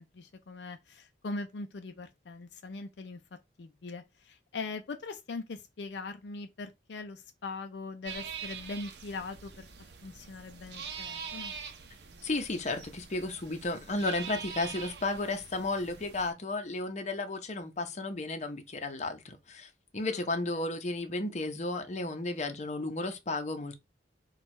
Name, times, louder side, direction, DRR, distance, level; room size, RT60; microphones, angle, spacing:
voice 1, 0.0-3.2 3.6-9.7 10.0-11.5 20.1-20.2 20.5-20.7, left 3 dB, 70° left, 0.5 m, -41 dB
sound 1, 8.0-16.3, right 6 dB, 65° right, 0.6 m, -44 dB
voice 2, 12.2-23.8, left 2 dB, 40° left, 0.7 m, -33 dB
4.4 x 2.4 x 4.2 m
head